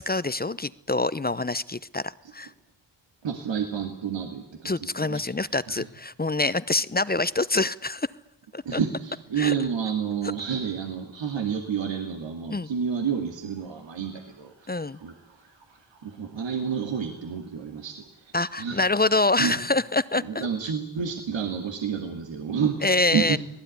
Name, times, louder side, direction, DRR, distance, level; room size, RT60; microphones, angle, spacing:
voice 1, 0.0-2.5 4.6-8.1 8.5-8.8 9.4-9.5 12.5-12.7 14.7-15.0 18.3-20.5 22.8-23.4, left 2 dB, 20° left, 16 dB, 0.8 m, -25 dB
voice 2, 3.2-4.7 5.1-5.3 5.7-5.9 8.6-18.8 19.4-19.6 20.2-22.8 23.1-23.4, right 7 dB, 85° right, 3 dB, 2.4 m, -30 dB
26.5 x 18.0 x 9.5 m, 0.87 s
cardioid pair, 50°, 44 cm